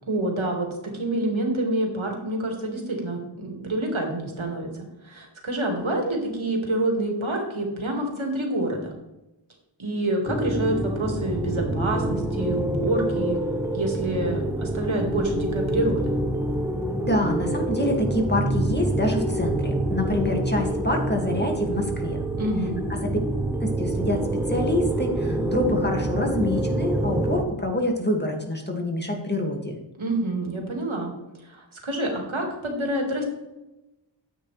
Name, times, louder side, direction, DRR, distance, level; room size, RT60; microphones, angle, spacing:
voice 1, 0.1-8.9 9.8-13.4 13.7-16.1 22.4-22.8 29.9-31.1 31.4-33.2, right 1 dB, 85° right, 1 dB, 2.1 m, -27 dB
sound 1, 10.3-27.5, right 1 dB, 5° right, 0.9 m, -26 dB
voice 2, 17.0-22.2 22.9-23.2 23.6-29.7, left 1 dB, 20° left, 1 dB, 2.1 m, -26 dB
10.0 x 8.2 x 3.3 m, 0.97 s
wide cardioid pair, 40°, 46 cm